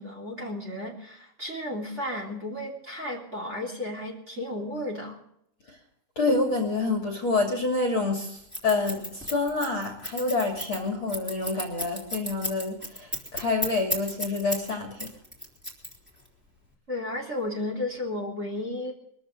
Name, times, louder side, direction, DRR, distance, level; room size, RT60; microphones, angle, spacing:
voice 1, 0.0-5.2 16.9-18.9, left 1 dB, 20° right, 3.3 m, -33 dB
voice 2, 6.2-15.1, left 3 dB, 40° left, 3.1 m, -27 dB
Scissors, 8.5-14.7 15.0-16.3, left 1 dB, 5° right, 3.5 m, -32 dB
23.0 x 14.0 x 3.9 m
omnidirectional pair, 3.9 m